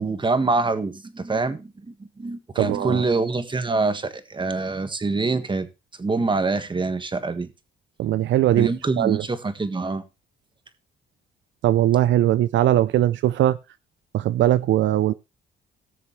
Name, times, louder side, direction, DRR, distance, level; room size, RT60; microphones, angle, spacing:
voice 1, 0.0-5.7 6.0-7.5 8.6-10.0, right 3 dB, 25° right, 1.6 m, -25 dB
voice 2, 2.6-3.0 8.0-8.7 9.0-9.2 11.6-13.6 14.1-15.1, right 13 dB, 70° right, 0.5 m, -20 dB
18.5 x 6.6 x 3.2 m
cardioid pair, 90°, 20 cm